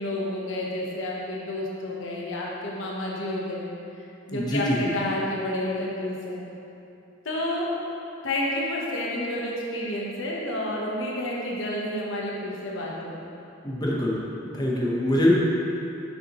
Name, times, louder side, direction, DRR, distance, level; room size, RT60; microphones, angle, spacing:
voice 1, 0.0-3.7 4.3-6.4 7.2-7.7 8.2-13.3, left 1 dB, 75° left, -4 dB, 0.9 m, -30 dB
voice 2, 4.3-4.8 13.6-14.2 14.5-15.4, left 1 dB, 20° left, -4 dB, 0.8 m, -23 dB
6.7 x 5.7 x 2.9 m, 2.8 s
head